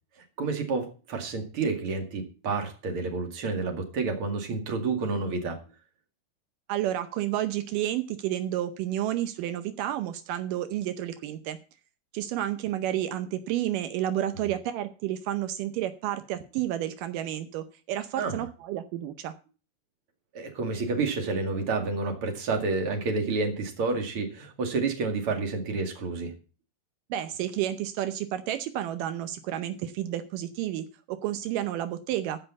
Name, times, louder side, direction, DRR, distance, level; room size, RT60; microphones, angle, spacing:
voice 1, 0.4-5.6 18.2-18.4 20.3-26.3, right 4 dB, 40° right, 5 dB, 2.3 m, -29 dB
voice 2, 6.7-11.6 12.1-19.3 27.1-32.4, right 12 dB, 85° right, 10 dB, 1.8 m, -31 dB
15.0 x 5.6 x 7.1 m, 0.35 s
omnidirectional pair, 4.8 m